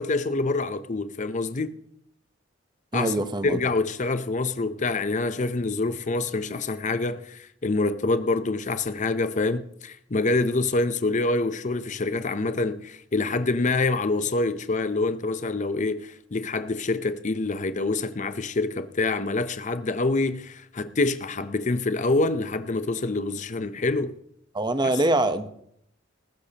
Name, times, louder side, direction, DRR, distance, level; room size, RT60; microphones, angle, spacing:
voice 1, 0.0-1.8 2.9-3.1 3.4-24.2 24.8-24.9, left 3 dB, 40° left, 0.7 m, -26 dB
voice 2, 2.9-3.6 24.5-25.5, right 2 dB, 20° right, 0.9 m, -24 dB
19.5 x 15.0 x 2.9 m
head